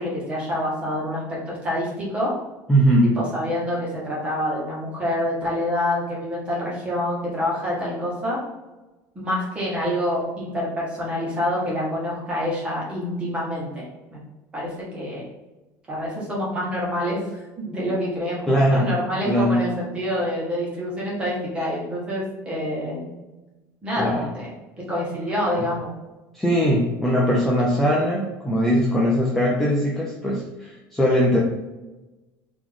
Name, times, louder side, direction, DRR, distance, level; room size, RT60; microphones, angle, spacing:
voice 1, 0.0-2.3 3.1-8.4 9.1-13.8 14.1-14.2 14.5-15.3 15.9-23.2 23.8-24.5 24.9-25.9, left 1 dB, 15° right, -6 dB, 1.5 m, -27 dB
voice 2, 2.7-3.2 18.5-18.9 19.2-19.7 24.0-24.3 26.3-31.4, equal, 5° left, -4 dB, 0.5 m, -20 dB
4.1 x 3.0 x 3.6 m, 1.1 s
cardioid pair, 170°, 7 cm